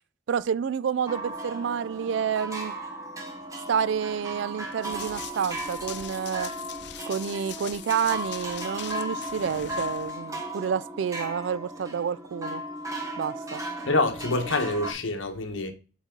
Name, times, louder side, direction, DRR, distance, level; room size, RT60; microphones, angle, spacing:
voice 1, 0.3-2.7 3.7-6.5 7.1-12.6 13.2-13.6, right 7 dB, 65° right, 0.3 m, -29 dB
sound 1, 1.1-14.9, right 1 dB, 15° right, 1.0 m, -36 dB
Run, 4.8-10.1, left 10 dB, 55° left, 0.6 m, -42 dB
voice 2, 13.9-15.7, left 2 dB, 75° left, 1.1 m, -26 dB
7.2 x 4.0 x 3.7 m
head